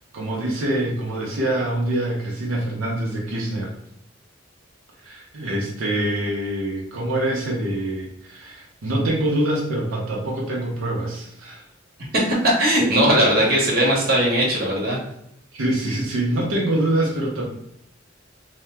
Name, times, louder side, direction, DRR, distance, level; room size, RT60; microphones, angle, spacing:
voice 1, 0.1-3.7 5.0-11.6 15.5-17.4, right 1 dB, 85° right, -3 dB, 0.7 m, -25 dB
voice 2, 12.1-15.0, right 1 dB, 50° right, -3 dB, 1.0 m, -19 dB
2.8 x 2.1 x 3.3 m, 0.74 s
head